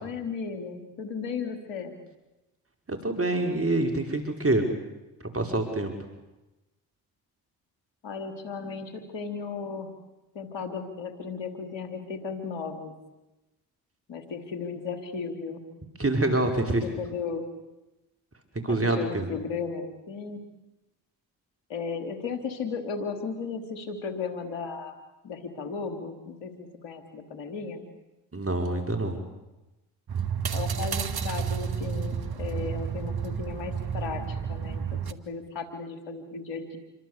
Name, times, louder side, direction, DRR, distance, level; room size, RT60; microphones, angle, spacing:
voice 1, 0.0-2.0 8.0-9.9 10.3-12.9 14.1-15.6 16.8-17.4 18.7-20.4 21.7-24.9 25.2-27.8 30.5-36.8, left 5 dB, 80° left, 7 dB, 3.7 m, -35 dB
voice 2, 2.9-4.7 5.3-5.9 16.0-16.8 18.6-19.3 28.3-29.2, right 2 dB, 30° right, 4 dB, 5.7 m, -26 dB
sound 1, 30.1-35.1, right 7 dB, 55° right, 2.1 m, -31 dB
28.0 x 24.0 x 8.4 m, 1.0 s
hypercardioid pair, 45°, 44 cm